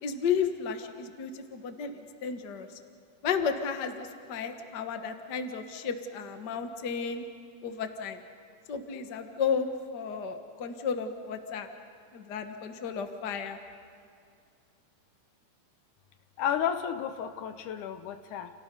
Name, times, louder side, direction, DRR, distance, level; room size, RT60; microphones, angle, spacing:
voice 1, 0.0-1.9 2.2-2.7 3.2-7.2 7.6-8.2 8.7-9.7 9.9-11.7 12.1-13.6, left 6 dB, 45° left, 6 dB, 1.6 m, -33 dB
voice 2, 16.4-18.5, left 9 dB, 75° left, 9 dB, 2.4 m, -32 dB
30.0 x 30.0 x 5.4 m, 2.3 s
omnidirectional pair, 3.6 m